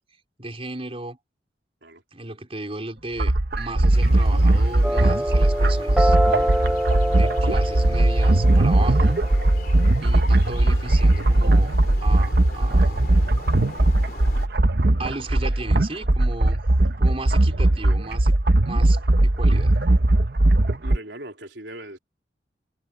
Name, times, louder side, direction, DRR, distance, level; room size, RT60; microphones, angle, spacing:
voice 1, 0.4-1.2 2.1-6.5 7.1-9.2 10.0-11.7 12.0-13.1 15.0-16.6 17.0-18.4 18.6-19.8, right 2 dB, 35° right, 4.5 m, -35 dB
sound 1, 3.2-21.0, right 1 dB, 60° right, 1.0 m, -19 dB
sound 2, 3.9-14.5, left 2 dB, 55° left, 3.0 m, -41 dB
sound 3, 4.8-9.9, equal, 5° right, 3.2 m, -26 dB
voice 2, 20.8-22.0, right 1 dB, 85° right, 3.7 m, -39 dB
head